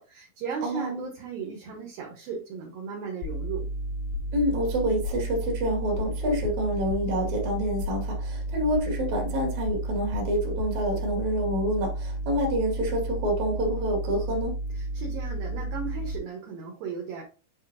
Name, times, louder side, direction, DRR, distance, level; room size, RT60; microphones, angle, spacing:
voice 1, 0.0-3.7 14.7-17.2, right 6 dB, 65° right, 2.8 m, -36 dB
voice 2, 0.6-1.1 4.3-14.6, equal, 45° right, 2.9 m, -27 dB
sound 1, 3.2-16.2, right 1 dB, 80° left, 3.1 m, -32 dB
8.1 x 4.8 x 2.8 m
omnidirectional pair, 5.4 m